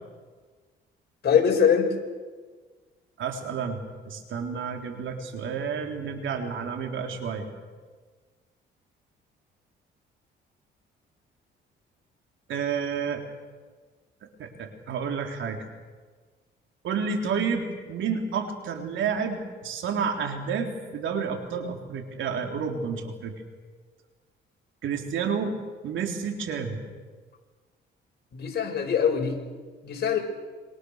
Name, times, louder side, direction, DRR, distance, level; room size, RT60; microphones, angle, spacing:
voice 1, 1.2-1.9 28.3-29.3 29.8-30.2, left 7 dB, 55° left, 1 dB, 6.5 m, -22 dB
voice 2, 3.2-3.8 4.0-7.5 12.5-13.2 14.4-15.7 16.8-23.3 24.8-25.6 25.8-26.8, right 6 dB, 75° right, 3 dB, 4.0 m, -30 dB
27.0 x 24.0 x 6.7 m, 1.4 s
cardioid pair, 90°, 20 cm